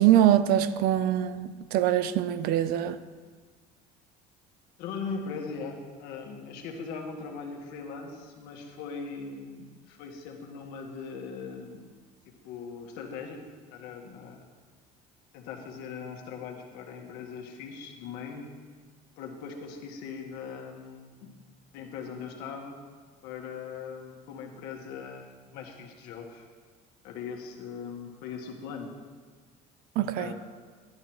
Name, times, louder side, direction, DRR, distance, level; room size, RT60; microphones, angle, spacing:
voice 1, 0.0-3.0 30.0-30.3, right 11 dB, 65° right, 0.5 m, -23 dB
voice 2, 4.8-11.8 12.2-13.4 13.7-14.5 15.3-18.4 19.2-21.3 21.7-22.8 23.2-26.4 27.0-28.9 30.2-30.3, left 5 dB, 75° left, 1.6 m, -40 dB
13.0 x 11.5 x 3.1 m
cardioid pair, 135°, 17 cm